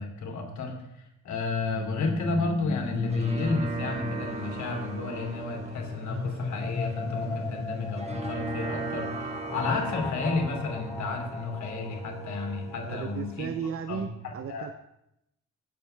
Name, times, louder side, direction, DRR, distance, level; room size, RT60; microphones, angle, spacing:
voice 1, 0.0-13.5 13.9-14.7, left 3 dB, 70° left, 2 dB, 2.9 m, -32 dB
sound 1, 1.5-13.3, left 3 dB, 10° left, 0.3 m, -35 dB
sound 2, 2.8-13.7, right 4 dB, 20° right, 1.4 m, -39 dB
sound 3, 3.9-9.9, right 4 dB, 85° right, 4.3 m, -50 dB
voice 2, 12.8-14.7, right 7 dB, 45° right, 10 dB, 0.6 m, -35 dB
18.0 x 7.6 x 3.4 m, 0.82 s
cardioid pair, 90°, 30 cm